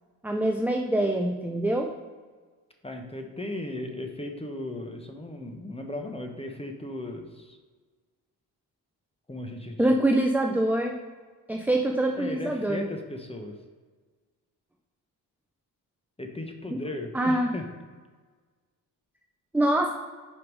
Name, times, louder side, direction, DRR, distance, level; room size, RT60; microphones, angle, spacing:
voice 1, 0.2-1.9 9.8-11.0 11.5-12.8 16.7-16.8 17.1-17.5 19.5-19.9, right 1 dB, 5° right, 2 dB, 0.7 m, -24 dB
voice 2, 2.8-7.6 9.3-9.9 12.1-13.6 16.2-17.7, left 1 dB, 15° left, 4 dB, 1.2 m, -36 dB
5.5 x 4.7 x 4.8 m, 1.4 s
supercardioid pair, 55°, 44 cm